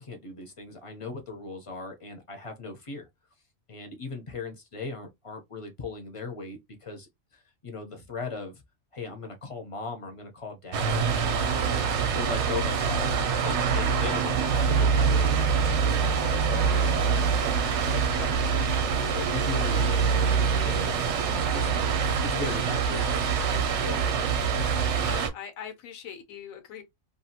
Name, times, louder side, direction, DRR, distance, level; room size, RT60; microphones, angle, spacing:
voice 1, 0.0-3.1 3.7-8.6 8.9-17.2 17.9-20.2 20.6-24.3, left 3 dB, 35° left, 0.5 m, -39 dB
sound 1, 10.7-25.3, right 6 dB, 65° right, 0.9 m, -25 dB
voice 2, 24.9-26.8, left 8 dB, 85° left, 1.1 m, -42 dB
2.7 x 2.3 x 2.7 m
omnidirectional pair, 1.4 m